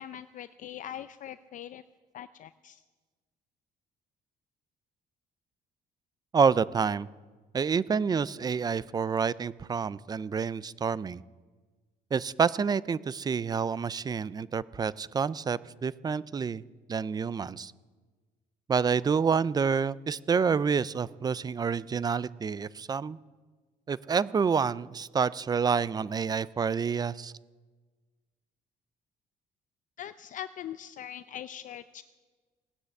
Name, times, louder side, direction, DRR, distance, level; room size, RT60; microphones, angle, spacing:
voice 1, 0.0-1.8 2.1-2.8 30.0-32.0, left 11 dB, 50° left, 13 dB, 0.5 m, -42 dB
voice 2, 6.3-7.1 7.5-11.2 12.1-16.6 16.9-17.7 18.7-23.2 23.9-27.3, right 6 dB, 25° right, 20 dB, 0.4 m, -28 dB
17.5 x 9.9 x 8.2 m, 1.3 s
cardioid pair, 135°, 16 cm